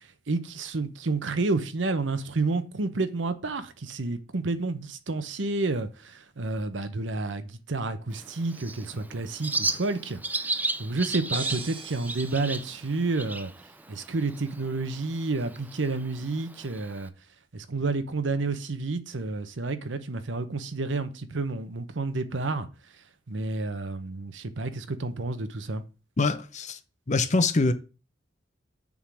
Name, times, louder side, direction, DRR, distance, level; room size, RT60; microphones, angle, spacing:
voice 1, 0.3-13.5 13.9-17.1 17.5-22.7 23.3-25.8, right 3 dB, 90° right, 0.9 m, -30 dB
Bird, 8.1-17.1, right 3 dB, 10° right, 0.4 m, -35 dB
sound 1, 11.3-13.1, right 5 dB, 30° right, 0.9 m, -42 dB
voice 2, 26.2-26.8 27.1-27.7, left 3 dB, 40° left, 0.7 m, -24 dB
7.1 x 3.8 x 6.1 m
head